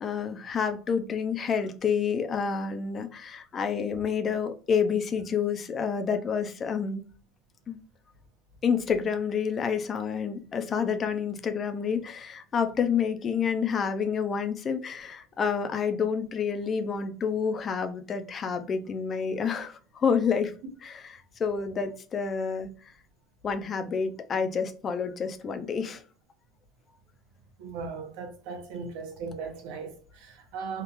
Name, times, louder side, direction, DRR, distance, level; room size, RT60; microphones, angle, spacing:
voice 1, 0.0-7.0 7.7-7.8 8.6-20.5 20.8-22.7 23.4-26.0, left 6 dB, 25° left, 0.4 m, -29 dB
voice 2, 27.6-30.8, right 5 dB, 70° right, 0.8 m, -38 dB
3.5 x 2.4 x 2.9 m
cardioid pair, 160°, 0 cm